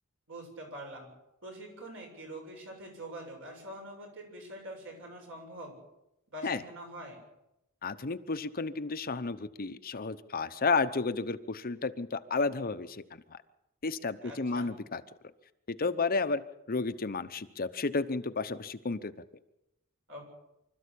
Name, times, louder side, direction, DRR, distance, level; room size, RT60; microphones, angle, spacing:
voice 1, 0.3-1.1 1.4-5.8 6.3-7.2 14.2-14.7 20.1-20.2, right 1 dB, 60° right, 1 dB, 7.7 m, -44 dB
voice 2, 7.8-13.4 13.8-15.0 15.7-16.4 16.7-19.1, left 4 dB, 45° left, 10 dB, 0.8 m, -32 dB
25.5 x 13.5 x 8.5 m, 0.89 s
head